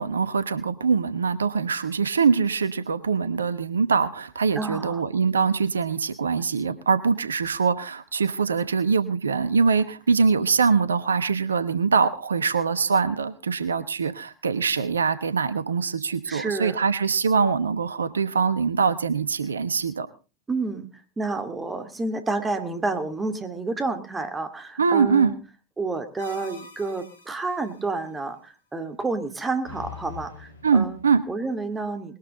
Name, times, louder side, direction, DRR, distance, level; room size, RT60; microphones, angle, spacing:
voice 1, 0.0-20.1 24.8-25.3 30.6-31.2, right 5 dB, 80° right, 14 dB, 0.9 m, -23 dB
voice 2, 4.6-5.1 16.3-16.8 20.5-20.9 21.2-25.3 25.8-31.0 31.3-32.2, right 3 dB, 15° right, 7 dB, 2.4 m, -29 dB
sound 1, 26.2-27.8 29.6-31.2, left 4 dB, 80° left, 2.3 m, -44 dB
20.5 x 12.5 x 3.8 m, 0.33 s
figure-of-eight pair, 85°, 0 cm